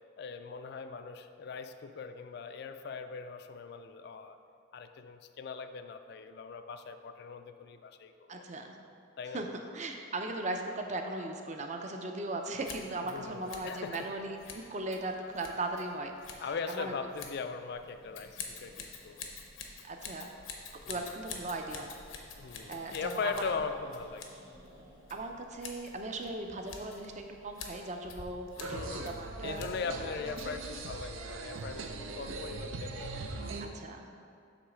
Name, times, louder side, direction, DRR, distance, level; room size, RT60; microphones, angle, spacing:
voice 1, 0.2-4.4 4.7-8.4 9.2-9.4 13.1-14.1 16.4-19.3 20.8-21.1 22.4-24.3 28.6-29.1 29.4-33.5, left 5 dB, 55° left, 8 dB, 0.4 m, -40 dB
voice 2, 8.3-8.8 9.3-9.5 9.7-16.1 16.7-16.9 19.8-20.3 20.9-21.9 22.7-23.5 25.1-29.6 33.6-34.1, right 2 dB, 35° right, 4 dB, 0.6 m, -38 dB
Scissors, 12.6-30.1, left 5 dB, 90° left, 0.9 m, -49 dB
Growling, 17.7-28.2, equal, 60° right, 1.3 m, -57 dB
sound 1, 28.6-33.7, right 3 dB, 90° right, 0.6 m, -40 dB
7.9 x 3.2 x 6.2 m, 2.5 s
head